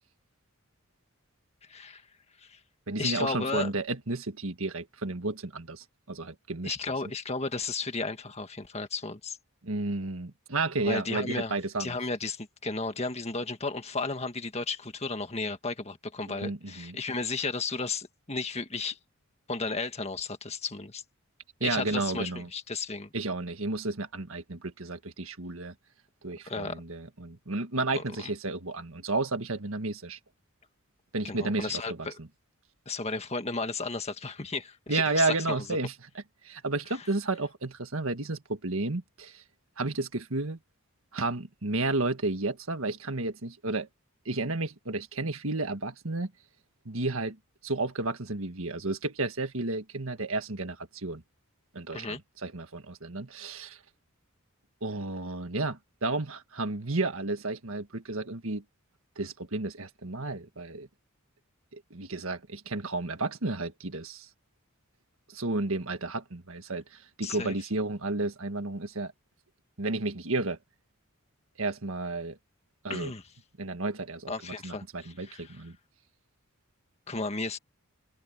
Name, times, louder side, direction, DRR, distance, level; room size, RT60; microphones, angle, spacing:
voice 1, 1.7-2.0 2.4-2.6 3.0-3.7 6.6-9.4 10.8-19.0 19.5-21.0 21.6-23.1 26.5-26.8 27.9-28.3 31.2-32.2 32.9-35.6 51.9-52.2 67.2-67.6 72.9-73.2 74.3-75.6 77.1-77.6, left 3 dB, 30° left, 1.7 m, -34 dB
voice 2, 2.9-6.8 9.6-12.0 16.3-17.0 21.6-22.5 23.1-25.8 26.2-30.2 31.1-32.3 34.9-35.9 36.4-39.4 39.8-40.6 41.1-43.9 44.3-46.3 46.9-51.2 51.7-53.8 54.8-58.6 59.2-60.9 61.7-64.3 65.3-69.1 69.8-70.6 71.6-72.4 72.8-73.1 73.6-74.3 74.6-75.8, right 2 dB, 65° right, 1.7 m, -32 dB
head